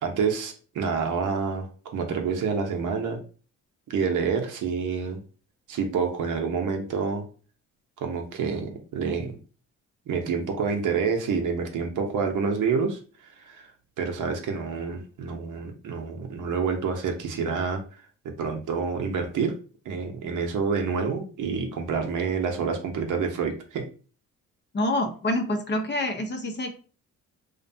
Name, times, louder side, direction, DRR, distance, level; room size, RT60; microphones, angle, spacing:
voice 1, 0.0-3.2 3.9-5.2 5.7-7.3 8.0-9.4 10.1-13.7 14.0-19.6 19.9-23.9, right 5 dB, 60° right, 4 dB, 0.7 m, -28 dB
voice 2, 24.7-26.7, left 1 dB, 30° left, 5 dB, 0.6 m, -27 dB
2.5 x 2.1 x 2.6 m, 0.37 s
supercardioid pair, 60°, 35 cm